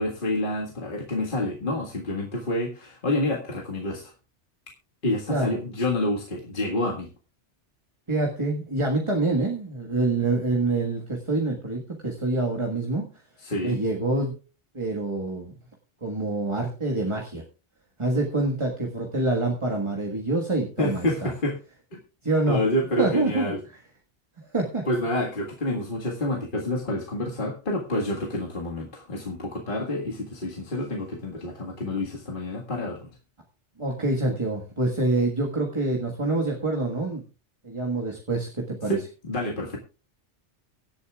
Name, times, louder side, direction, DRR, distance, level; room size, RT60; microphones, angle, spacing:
voice 1, 0.0-4.1 5.0-7.1 13.4-13.8 20.8-21.6 21.9-22.0 22.5-23.6 24.9-33.1 38.9-39.8, left 1 dB, 45° left, -1 dB, 1.9 m, -28 dB
voice 2, 8.1-13.0 13.6-14.3 14.7-15.5 16.0-17.4 18.0-21.3 22.2-22.6 23.0-23.5 24.4-24.9 28.3-28.4 33.8-37.2 37.6-39.0, right 2 dB, 25° right, 1 dB, 1.6 m, -26 dB
24.0 x 8.3 x 2.4 m, 0.34 s
omnidirectional pair, 1.2 m